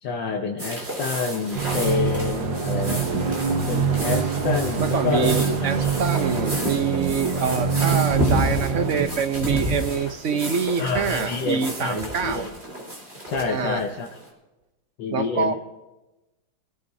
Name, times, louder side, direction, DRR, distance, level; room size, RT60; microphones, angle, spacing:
voice 1, 0.0-3.1 3.7-6.0 10.8-12.4 13.3-14.1 15.0-15.5, left 4 dB, 75° left, 1 dB, 1.6 m, -28 dB
sound 1, 0.6-14.2, equal, 30° right, 4.1 m, -31 dB
sound 2, 1.5-9.1, right 6 dB, 75° right, 1.8 m, -25 dB
voice 2, 4.8-12.5 13.5-13.8 15.1-15.5, right 6 dB, 50° right, 8 dB, 1.0 m, -25 dB
23.0 x 14.0 x 2.8 m, 1.0 s
omnidirectional pair, 2.0 m